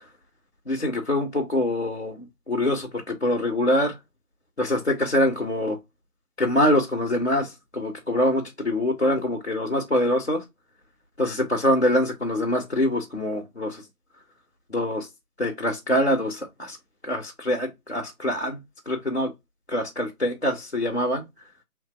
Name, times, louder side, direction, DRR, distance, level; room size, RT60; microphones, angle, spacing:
voice 1, 0.7-4.0 4.6-5.8 6.4-10.4 11.2-13.8 14.7-15.1 15.4-16.8 17.0-18.6 18.9-19.3 19.7-21.2, left 1 dB, 45° left, 0.5 m, -24 dB
2.9 x 2.7 x 2.2 m
figure-of-eight pair, 165°, 46 cm